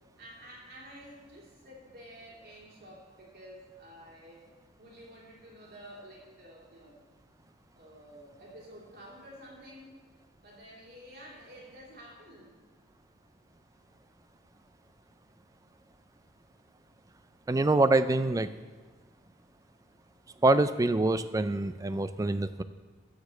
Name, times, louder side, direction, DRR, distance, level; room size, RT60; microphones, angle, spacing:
voice 1, 0.2-4.4 4.8-6.9 7.7-9.9 10.4-12.5, equal, 50° right, -4 dB, 2.8 m, -50 dB
voice 2, 17.5-18.5 20.4-22.6, right 2 dB, 15° right, 13 dB, 0.3 m, -25 dB
15.5 x 5.1 x 6.5 m, 1.4 s
head